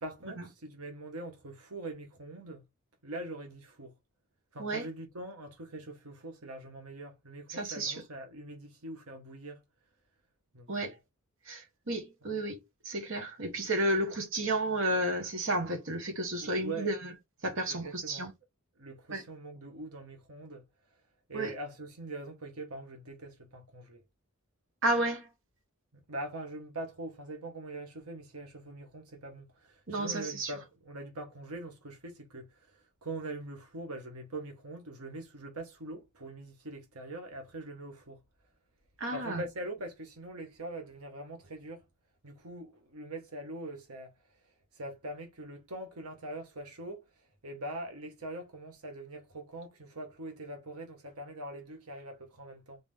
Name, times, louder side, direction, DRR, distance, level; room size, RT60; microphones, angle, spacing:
voice 1, 0.0-2.6 3.0-3.9 4.5-9.6 10.5-11.0 16.4-16.9 17.6-18.3 18.8-20.6 21.3-24.0 26.1-38.2 39.1-41.8 42.2-44.1 44.7-47.0 47.4-52.8, right 2 dB, 85° right, 1.2 m, -43 dB
voice 2, 7.5-7.9 10.7-10.9 11.5-11.6 11.9-12.6 12.9-17.0 17.4-18.3 19.1-19.2 21.3-21.5 24.8-25.3 29.9-30.5 39.0-39.4, right 1 dB, 60° right, 1.4 m, -31 dB
4.0 x 3.6 x 3.4 m
head